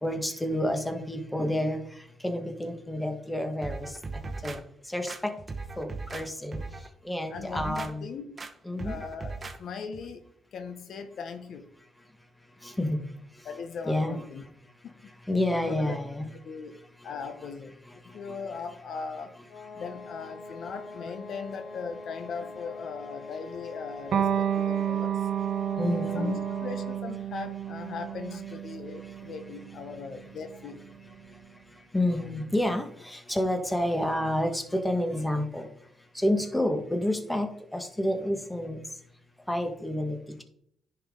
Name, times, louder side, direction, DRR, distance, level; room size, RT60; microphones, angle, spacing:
voice 1, 0.0-1.8 2.2-3.9 4.4-4.6 4.9-5.3 5.8-6.6 7.0-8.0 8.6-9.0 12.6-13.0 13.8-14.2 15.3-16.3 25.8-26.4 31.9-35.7 36.1-38.8 39.5-40.2, left 1 dB, 10° left, 5 dB, 1.5 m, -29 dB
sound 1, 3.6-4.6 5.1-6.3 6.5-6.9 7.3-7.9 8.4-8.5 8.8-9.6 9.9-10.0, right 3 dB, 30° right, 1.2 m, -38 dB
voice 2, 7.3-8.4 8.8-11.7 13.4-14.5 14.8-15.0 15.5-16.0 16.4-16.8 17.0-17.8 18.0-19.3 19.7-25.3 26.1-30.9, left 5 dB, 65° left, 8 dB, 0.9 m, -39 dB
sound 2, 19.5-27.2, left 3 dB, 90° left, 1.5 m, -44 dB
Electric guitar, 24.1-31.3, right 9 dB, 65° right, 1.1 m, -31 dB
10.0 x 5.9 x 3.7 m, 0.68 s
cardioid pair, 90°, 0 cm